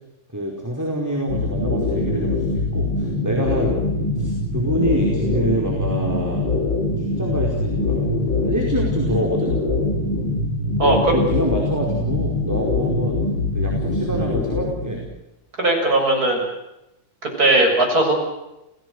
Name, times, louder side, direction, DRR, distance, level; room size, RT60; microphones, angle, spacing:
voice 1, 0.3-3.8 4.2-6.5 7.0-8.1 8.4-9.6 10.8-13.2 13.5-15.0, equal, 10° right, -1 dB, 4.8 m, -26 dB
sound 1, 1.3-15.1, left 2 dB, 85° left, 5.1 m, -23 dB
voice 2, 10.8-11.1 15.6-16.4 17.4-18.1, right 2 dB, 50° right, 1 dB, 7.6 m, -17 dB
29.5 x 18.0 x 8.0 m, 0.92 s
omnidirectional pair, 2.0 m